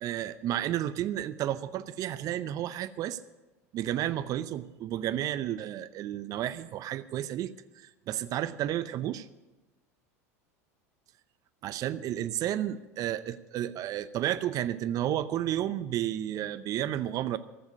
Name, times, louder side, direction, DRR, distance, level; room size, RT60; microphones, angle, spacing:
voice 1, 0.0-3.2 3.7-9.3 11.6-17.4, right 12 dB, 45° right, 14 dB, 0.6 m, -32 dB
14.5 x 7.3 x 9.5 m, 1.1 s
hypercardioid pair, 85°, 8 cm